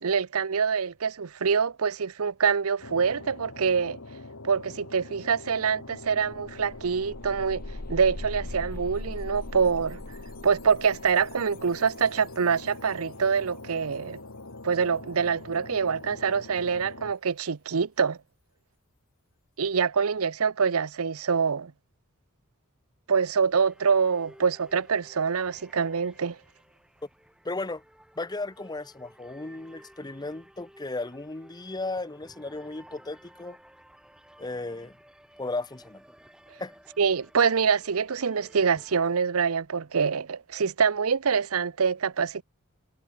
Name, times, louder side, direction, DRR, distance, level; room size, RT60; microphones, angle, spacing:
voice 1, 0.0-4.0 4.4-7.6 7.9-10.0 10.4-14.2 14.6-18.2 19.6-21.7 23.1-26.4 37.0-42.4, right 6 dB, 90° right, 0.7 m, -25 dB
sound 1, 2.8-17.2, left 2 dB, 80° left, 2.4 m, -44 dB
sound 2, 5.7-5.8 6.1-12.9, left 2 dB, 45° left, 1.1 m, -41 dB
sound 3, 23.6-39.1, equal, 5° right, 5.2 m, -55 dB
voice 2, 27.4-27.8 28.2-33.6 34.4-34.9 35.4-36.0 36.6-36.7, left 2 dB, 20° left, 0.8 m, -35 dB
head